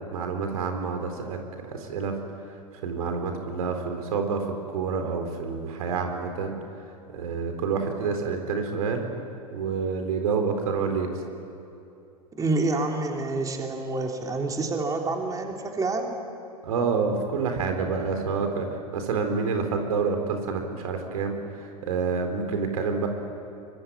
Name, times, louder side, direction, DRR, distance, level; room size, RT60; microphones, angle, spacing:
voice 1, 0.1-2.2 2.5-6.8 7.1-9.1 9.5-11.2 16.6-23.1, right 5 dB, 65° right, 5 dB, 4.1 m, -28 dB
voice 2, 12.4-16.1, right 3 dB, 20° right, 1 dB, 3.2 m, -27 dB
25.0 x 24.0 x 9.7 m, 2.8 s
figure-of-eight pair, 95°, 20 cm